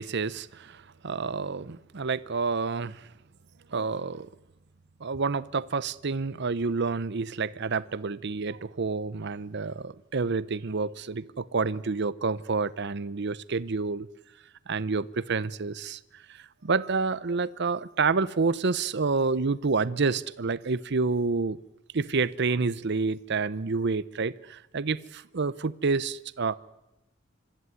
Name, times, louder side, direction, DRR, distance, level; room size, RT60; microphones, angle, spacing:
voice 1, 0.0-3.1 3.7-4.3 5.0-14.1 14.7-16.0 16.6-21.6 21.9-26.5, right 4 dB, 60° right, 0.7 m, -28 dB
26.0 x 14.0 x 9.5 m
head